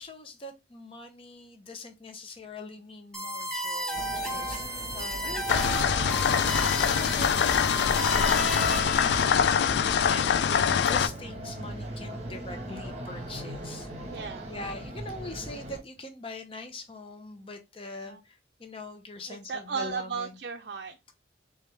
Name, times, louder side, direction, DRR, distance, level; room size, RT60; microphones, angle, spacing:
voice 1, 0.0-9.3 10.0-13.9 14.5-20.4, left 2 dB, 30° left, 5 dB, 0.7 m, -43 dB
sound 1, 3.1-9.1, equal, 5° left, 1.1 m, -33 dB
sound 2, 3.9-15.8, right 1 dB, 35° right, 0.9 m, -40 dB
sound 3, 5.5-11.1, left 7 dB, 65° left, 0.3 m, -24 dB
voice 2, 14.1-14.5 18.1-18.2 19.3-21.1, right 5 dB, 60° right, 3 dB, 0.5 m, -35 dB
3.4 x 3.2 x 3.3 m, 0.25 s
head